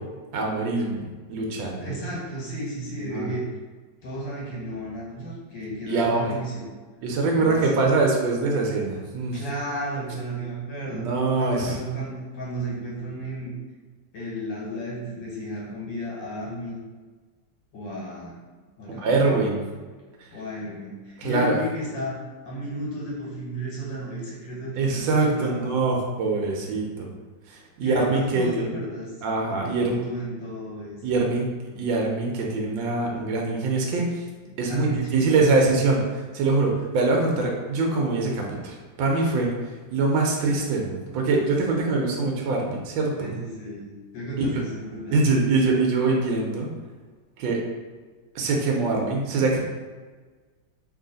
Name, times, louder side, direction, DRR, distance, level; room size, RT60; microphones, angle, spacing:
voice 1, 0.3-1.9 3.1-3.3 5.9-6.3 7.0-9.4 10.9-11.8 19.0-19.6 21.2-21.5 24.8-27.1 27.8-28.7 29.2-30.0 31.0-31.5 31.7-34.2 34.6-39.5 39.9-43.3 45.1-46.7 47.4-47.6 48.3-49.6, right 3 dB, 85° right, 0 dB, 1.4 m, -23 dB
voice 2, 1.8-3.5 4.0-6.6 7.4-7.9 9.3-11.1 11.3-13.5 14.1-16.8 17.7-18.4 18.8-19.3 20.3-25.7 27.8-29.1 29.5-31.0 34.5-35.8 43.2-45.4, right 1 dB, 75° left, -5 dB, 1.6 m, -33 dB
3.1 x 2.7 x 3.8 m, 1.4 s
omnidirectional pair, 2.1 m